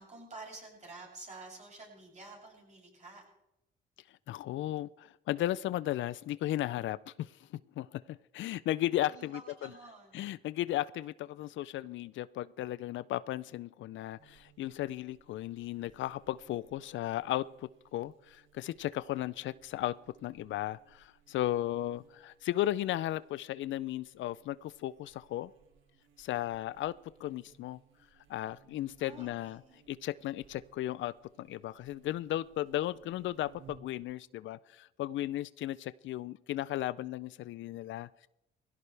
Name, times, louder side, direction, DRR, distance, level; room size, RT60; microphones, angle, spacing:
voice 1, 0.0-3.2 9.1-10.2 29.0-29.8, right 3 dB, 35° right, 7.6 m, -50 dB
voice 2, 4.3-9.4 10.1-25.5 26.2-27.8 28.3-29.6 29.9-38.3, left 14 dB, 75° left, 0.4 m, -35 dB
Buzz, 14.2-34.0, right 6 dB, 80° right, 2.2 m, -63 dB
21.0 x 16.0 x 3.4 m
cardioid pair, 90°, 20 cm